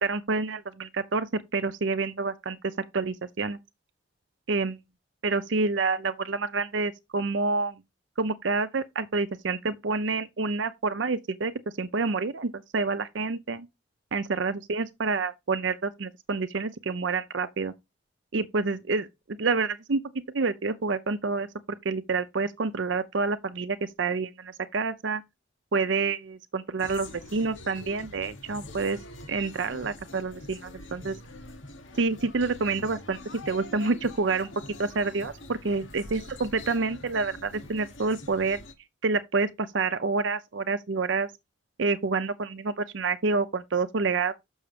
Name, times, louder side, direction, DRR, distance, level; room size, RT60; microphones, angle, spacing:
voice 1, 0.0-2.6 2.9-3.6 4.5-4.8 5.2-7.8 8.2-11.5 11.8-13.7 14.1-17.7 18.3-19.1 19.4-20.0 20.3-21.5 21.8-25.2 25.7-29.0 29.3-31.2 32.0-33.2 33.5-34.5 34.8-38.6 39.0-41.3 41.8-44.3, right 4 dB, 70° right, 0.6 m, -28 dB
sound 1, 26.8-38.7, left 2 dB, 80° left, 1.6 m, -44 dB
6.9 x 6.3 x 5.1 m
head